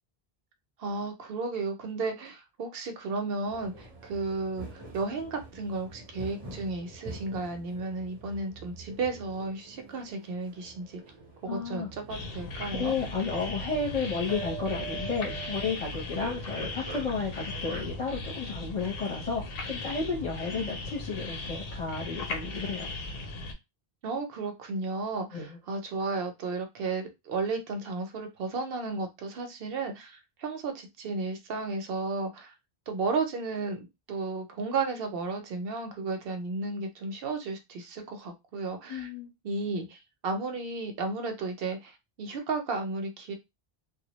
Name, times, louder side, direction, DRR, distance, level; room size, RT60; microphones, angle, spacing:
voice 1, 0.8-4.7 4.9-11.0 11.4-12.9 24.0-32.5 32.9-39.1 39.4-41.9 42.2-43.3, right 3 dB, 70° right, 5 dB, 0.8 m, -33 dB
sound 1, 3.4-17.8, right 4 dB, 30° right, 0.6 m, -45 dB
voice 2, 11.5-11.9 12.7-22.9 25.3-25.6 38.9-39.3, left 4 dB, 40° left, -2 dB, 0.8 m, -32 dB
sound 2, 12.1-23.5, left 2 dB, 70° left, 0.8 m, -38 dB
2.1 x 2.0 x 2.9 m, 0.22 s
omnidirectional pair, 1.1 m